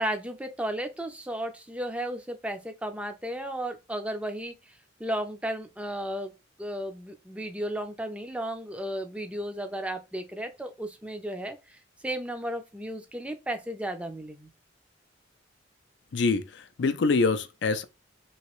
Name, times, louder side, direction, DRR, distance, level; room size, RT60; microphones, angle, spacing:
voice 1, 0.0-6.3 6.6-14.5, right 1 dB, 5° right, 0.5 m, -34 dB
voice 2, 16.1-17.8, left 3 dB, 65° left, 0.4 m, -25 dB
3.0 x 2.8 x 3.0 m
head